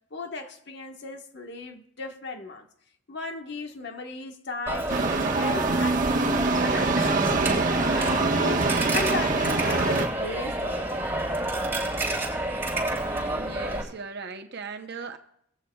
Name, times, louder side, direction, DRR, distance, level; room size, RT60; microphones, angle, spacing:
voice 1, 0.1-2.7 3.1-8.7 8.9-11.0, left 3 dB, 60° left, 1.4 m, -36 dB
Coin (dropping), 4.7-13.8, right 1 dB, 10° right, 7.2 m, -29 dB
sound 1, 4.9-10.1, right 3 dB, 45° right, 1.3 m, -24 dB
voice 2, 13.3-15.2, right 5 dB, 60° right, 0.8 m, -38 dB
22.5 x 14.5 x 2.3 m
head